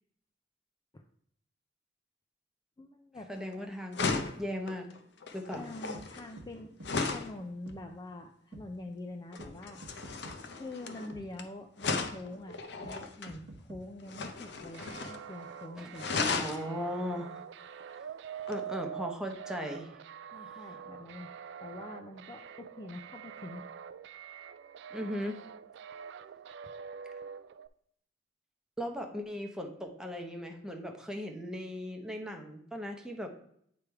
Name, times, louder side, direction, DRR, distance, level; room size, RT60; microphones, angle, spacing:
voice 1, 2.8-3.3 5.5-6.8 7.1-10.1 10.5-16.3 18.8-18.9 20.3-21.3 21.6-23.6, left 2 dB, 20° left, 4 dB, 0.4 m, -45 dB
voice 2, 3.3-4.9 5.3-5.7 15.8-15.9 16.3-17.4 17.9-18.1 18.5-19.9 20.4-20.7 24.9-25.4 28.8-33.3, equal, 5° right, 2 dB, 0.8 m, -38 dB
sound 1, 3.4-3.5 3.9-7.4 9.3-11.4 11.8-13.3 14.1-15.3 15.5-15.6 15.9-16.6 18.5-18.6, left 4 dB, 65° left, 0.7 m, -35 dB
sound 2, 5.9-6.1 6.4-6.5 6.8-6.9 7.7-7.8 8.5-8.7 9.4-9.5 9.8-10.4 11.1-11.2 12.0-12.1 12.8-13.0 13.3-13.8, right 1 dB, 85° right, 0.9 m, -48 dB
sound 3, 14.7-27.7, right 8 dB, 65° right, 0.3 m, -45 dB
8.5 x 3.3 x 4.6 m, 0.68 s
head